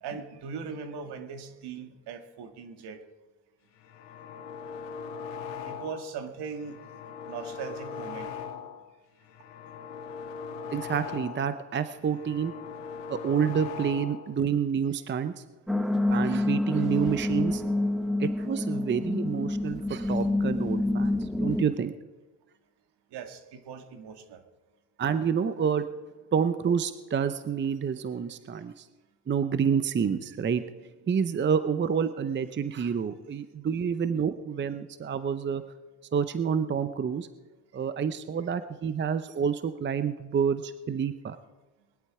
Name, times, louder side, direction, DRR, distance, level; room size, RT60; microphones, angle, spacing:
voice 1, 0.0-3.0 5.7-6.8 7.3-8.3 23.1-24.4, right 6 dB, 65° right, 7 dB, 2.0 m, -39 dB
sound 1, 3.8-6.1 6.5-8.9 9.2-11.6 11.9-14.3, left 6 dB, 80° left, 1.9 m, -40 dB
voice 2, 10.7-12.5 13.1-15.4 16.1-17.6 18.2-21.9 25.0-25.9 26.3-28.9 29.3-30.7 31.1-35.6 36.1-37.3 37.7-41.4, right 7 dB, 25° right, 12 dB, 0.7 m, -28 dB
sound 2, 15.7-21.6, left 2 dB, ahead, 1.1 m, -27 dB
20.5 x 11.5 x 4.9 m, 1.2 s
cardioid pair, 95°, 43 cm